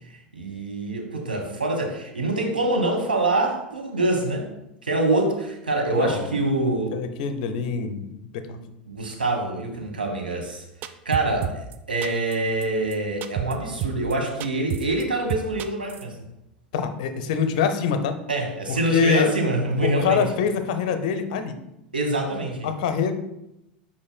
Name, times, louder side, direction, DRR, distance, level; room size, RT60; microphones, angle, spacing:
voice 1, 0.3-4.5 4.8-7.0 8.5-10.6 11.0-16.2 18.3-20.2 21.9-22.7, right 2 dB, 80° right, 1 dB, 1.2 m, -25 dB
voice 2, 5.9-6.3 6.9-8.5 16.7-18.2 18.7-19.3 19.8-21.5 22.6-23.1, left 7 dB, 55° left, 9 dB, 0.7 m, -25 dB
sound 1, 10.8-11.8 12.0-12.4 12.6-12.7 12.9-13.0 13.2-13.5 13.8-14.1 14.4-15.0 15.3-16.0, right 9 dB, 40° right, 0.4 m, -29 dB
8.4 x 5.2 x 2.2 m, 0.86 s
figure-of-eight pair, 85°, 5 cm